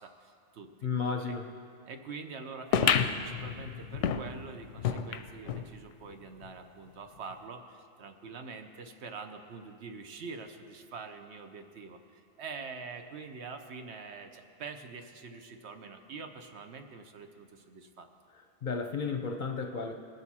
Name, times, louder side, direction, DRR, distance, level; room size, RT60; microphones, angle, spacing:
voice 1, 0.0-0.9 1.3-1.4 1.9-18.1, right 4 dB, 70° right, 6 dB, 1.0 m, -45 dB
voice 2, 0.8-1.5 18.6-19.9, left 5 dB, 50° left, 4 dB, 0.7 m, -33 dB
sound 1, 2.7-5.7 6.1-6.2 6.4-6.5 7.3-7.4, left 7 dB, 90° left, 0.9 m, -30 dB
19.0 x 6.7 x 4.2 m, 2.3 s
omnidirectional pair, 1.2 m